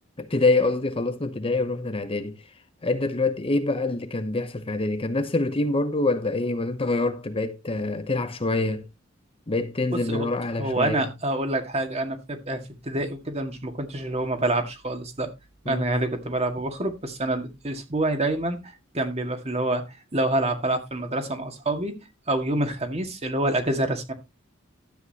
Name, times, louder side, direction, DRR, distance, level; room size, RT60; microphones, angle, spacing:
voice 1, 0.2-2.4 2.8-8.8 9.5-11.1 15.7-15.9, left 2 dB, 30° left, 0.8 m, -25 dB
voice 2, 10.6-15.3 15.7-18.6 18.9-19.8 20.1-21.9 22.3-24.1, right 1 dB, 30° right, 1.9 m, -27 dB
12.5 x 8.5 x 2.8 m
head